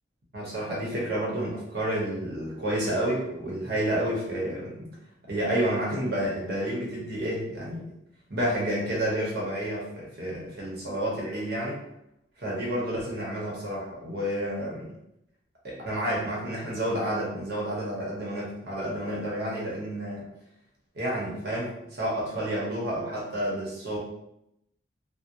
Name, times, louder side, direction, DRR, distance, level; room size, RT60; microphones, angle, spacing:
voice 1, 0.3-4.9 5.3-7.9 8.3-11.8 12.4-14.9 15.6-20.2 20.9-24.0, right 1 dB, 60° right, -4 dB, 0.8 m, -30 dB
2.4 x 2.0 x 2.8 m, 0.81 s
head